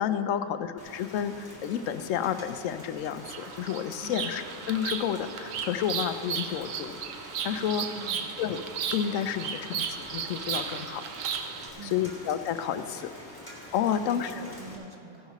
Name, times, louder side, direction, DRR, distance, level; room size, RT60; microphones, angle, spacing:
voice 1, 0.0-7.0 7.4-7.9 8.4-8.6 8.9-11.1 11.8-13.1 13.7-14.3, left 9 dB, 90° left, 10 dB, 1.0 m, -30 dB
Rain, 0.8-14.8, left 1 dB, 15° left, 1.9 m, -46 dB
Bird vocalization bird call bird song, 3.2-11.7, right 7 dB, 85° right, 1.1 m, -35 dB
voice 2, 7.8-8.3 11.7-12.2 14.0-15.3, right 2 dB, 30° right, 1 dB, 0.7 m, -45 dB
16.5 x 11.0 x 3.0 m, 2.7 s
omnidirectional pair, 1.3 m